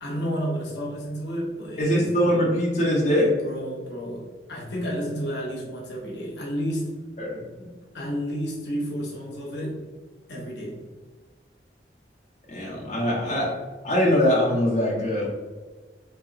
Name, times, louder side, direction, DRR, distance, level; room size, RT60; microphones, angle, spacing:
voice 1, 0.0-2.5 3.4-7.1 7.6-9.9 10.3-10.8 13.3-13.4, equal, 70° left, -3 dB, 0.9 m, -31 dB
voice 2, 1.8-3.3 7.2-7.4 12.5-13.5 13.8-15.3, equal, 40° left, -5 dB, 0.9 m, -22 dB
4.5 x 3.0 x 2.5 m, 1.3 s
head